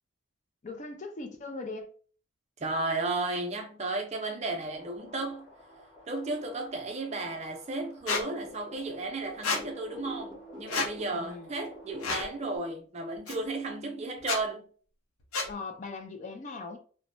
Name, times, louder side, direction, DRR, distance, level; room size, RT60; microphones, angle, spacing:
voice 1, 0.6-1.9 11.1-11.5 15.5-16.8, left 3 dB, 35° left, 0.4 m, -39 dB
voice 2, 2.6-5.5 6.1-14.7, right 2 dB, 30° right, 0.4 m, -34 dB
sound 1, 4.6-12.6, equal, 15° right, 1.2 m, -49 dB
Squeak, 8.1-8.2 9.4-9.6 10.7-10.9 12.0-12.3 13.3-13.4 14.2-14.4 15.3-15.5, left 3 dB, 85° left, 0.6 m, -29 dB
3.2 x 2.1 x 2.5 m
head